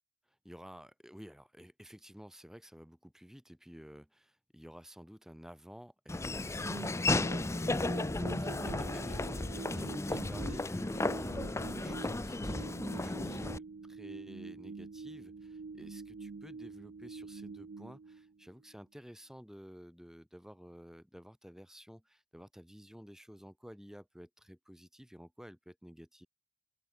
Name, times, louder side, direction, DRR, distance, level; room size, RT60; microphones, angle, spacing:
voice 1, 0.4-7.9 8.3-26.3, equal, ahead, 1.7 m, -52 dB
Laughter / Walk footsteps, 6.1-13.6, left 2 dB, 15° left, 0.5 m, -34 dB
sound 1, 6.6-18.7, right 4 dB, 55° right, 0.5 m, -46 dB
head